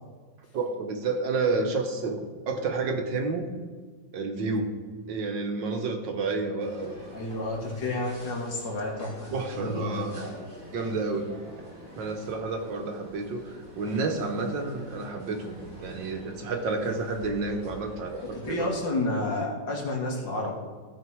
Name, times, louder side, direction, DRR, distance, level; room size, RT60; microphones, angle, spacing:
voice 1, 0.5-3.5 4.1-4.7 5.1-7.0 9.3-10.1 10.7-11.3 12.0-18.7, right 3 dB, 80° right, 4 dB, 1.9 m, -30 dB
sound 1, 6.6-18.8, right 1 dB, 40° right, 3.7 m, -47 dB
voice 2, 7.1-10.4 18.2-20.5, left 2 dB, 75° left, -1 dB, 2.7 m, -31 dB
15.5 x 5.2 x 4.7 m, 1.6 s
omnidirectional pair, 2.0 m